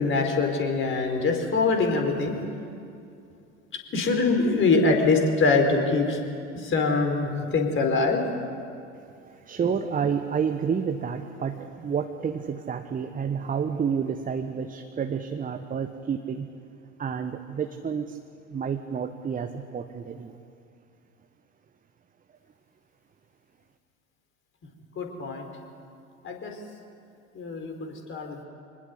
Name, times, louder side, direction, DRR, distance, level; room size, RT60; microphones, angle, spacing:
voice 1, 0.0-2.4 3.9-6.2 6.5-8.2 24.6-24.7 24.9-25.5 26.2-26.6 27.3-28.4, left 3 dB, 30° left, 3 dB, 4.5 m, -24 dB
voice 2, 8.9-16.5 17.0-18.2 18.5-20.4, right 6 dB, 20° right, 7 dB, 1.2 m, -30 dB
25.0 x 20.0 x 8.5 m, 2.5 s
figure-of-eight pair, 75°, 39 cm